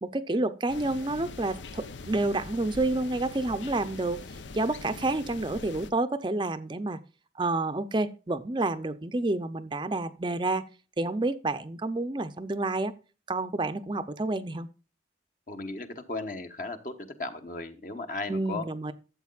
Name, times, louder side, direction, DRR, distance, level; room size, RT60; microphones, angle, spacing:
voice 1, 0.0-4.2 4.5-7.0 7.4-10.6 11.0-12.9 13.3-14.7 18.3-18.9, right 2 dB, 25° right, 10 dB, 0.5 m, -29 dB
sound 1, 0.7-5.9, left 3 dB, 90° left, 0.7 m, -43 dB
voice 2, 15.5-18.7, left 3 dB, 45° left, 7 dB, 1.1 m, -36 dB
12.5 x 7.7 x 2.4 m, 0.33 s
head